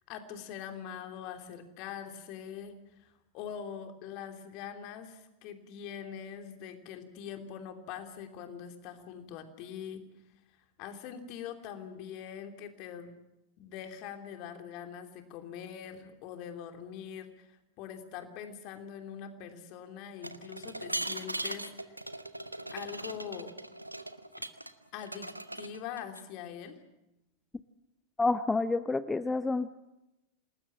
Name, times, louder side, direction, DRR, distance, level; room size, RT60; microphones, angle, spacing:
voice 1, 0.0-10.0 10.8-13.1 13.6-22.0 22.7-23.5 24.9-26.8, left 8 dB, 45° left, 6 dB, 3.1 m, -43 dB
sound 1, 20.2-24.7 25.0-26.2, right 1 dB, 85° right, 1.1 m, -39 dB
voice 2, 28.2-29.7, left 3 dB, 10° left, 14 dB, 0.7 m, -28 dB
27.5 x 19.5 x 7.4 m, 0.94 s
figure-of-eight pair, 90°, 0 cm